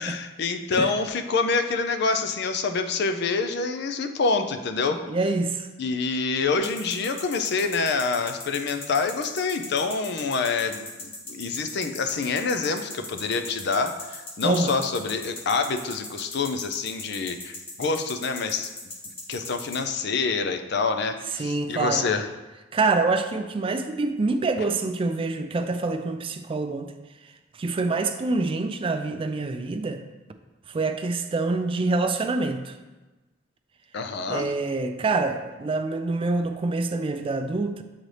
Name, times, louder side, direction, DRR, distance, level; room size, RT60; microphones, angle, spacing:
voice 1, 0.0-5.0 5.8-18.7 19.3-22.3 33.9-34.5, left 4 dB, 65° left, 7 dB, 0.5 m, -26 dB
voice 2, 5.1-5.7 14.4-14.7 21.4-22.0 22.7-26.9 27.6-30.0 30.7-32.7 34.3-37.8, right 3 dB, 30° right, 7 dB, 0.3 m, -26 dB
sound 1, 6.6-19.8, left 2 dB, 30° left, 1.1 m, -38 dB
7.6 x 4.0 x 3.2 m, 1.1 s
head